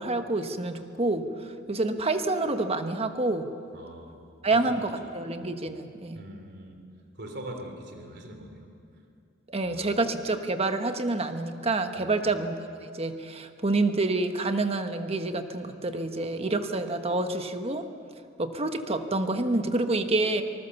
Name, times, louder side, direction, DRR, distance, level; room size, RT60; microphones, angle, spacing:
voice 1, 0.0-3.5 4.4-6.2 9.5-17.9 18.4-20.4, right 2 dB, 30° right, 7 dB, 1.2 m, -28 dB
voice 2, 3.7-4.8 5.7-5.8 6.1-6.8 7.2-8.7 9.6-10.0 12.0-12.2, right 1 dB, 60° right, 4 dB, 3.1 m, -43 dB
25.0 x 19.5 x 7.0 m, 2.5 s
head